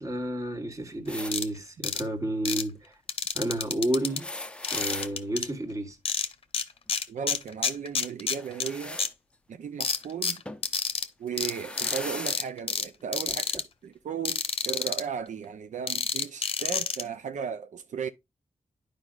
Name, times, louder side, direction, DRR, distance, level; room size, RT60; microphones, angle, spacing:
voice 1, 0.0-2.9 3.3-4.3 4.7-6.0 13.3-13.4, right 1 dB, 25° right, 1.5 m, -31 dB
sound 1, 1.1-1.3 4.0-5.1 8.3-9.1 10.4-10.7 11.3-12.4 13.4-13.5 14.7-14.8, left 1 dB, 10° left, 0.6 m, -38 dB
sound 2, 1.3-1.5 1.8-2.0 2.5-2.6 3.1-4.2 4.6-5.5 6.1-6.6 6.9-8.7 9.0-9.1 9.8-11.1 11.4-11.5 11.8-12.0 12.3-12.9 13.1-13.6 14.3-15.0 15.9-17.0, left 5 dB, 45° left, 0.8 m, -29 dB
voice 2, 7.1-9.0 9.5-10.4 11.2-18.1, right 7 dB, 80° right, 0.5 m, -36 dB
11.5 x 4.9 x 2.4 m
wide cardioid pair, 145°, 13 cm